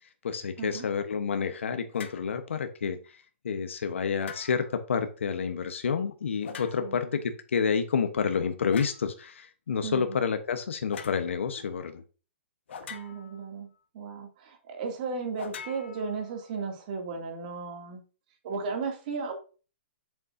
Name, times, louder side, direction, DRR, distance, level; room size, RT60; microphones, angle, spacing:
voice 1, 0.2-12.0, left 6 dB, 90° left, 1.1 m, -29 dB
sound 1, 1.9-2.3 4.2-4.8 6.4-7.1 8.7-9.1 10.9-11.2 12.7-13.4 15.4-16.5, left 7 dB, 70° left, 1.3 m, -43 dB
voice 2, 9.8-10.2 12.9-18.0 18.4-19.3, right 5 dB, 40° right, 2.5 m, -35 dB
8.2 x 7.2 x 2.7 m
hypercardioid pair, 160°, 6 cm